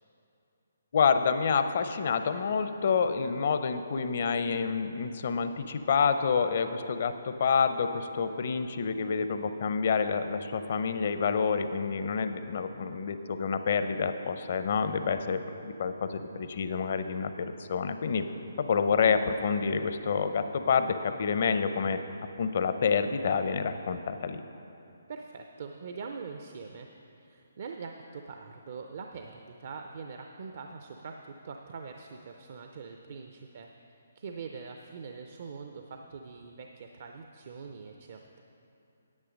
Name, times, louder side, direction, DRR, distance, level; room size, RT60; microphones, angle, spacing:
voice 1, 0.9-18.2 18.6-22.0 22.4-24.4, left 5 dB, 55° left, 9 dB, 0.6 m, -28 dB
voice 2, 25.1-26.9 27.2-33.7 34.2-38.4, right 5 dB, 55° right, 4 dB, 0.5 m, -43 dB
9.6 x 8.4 x 5.2 m, 2.8 s
figure-of-eight pair, 140°, 0 cm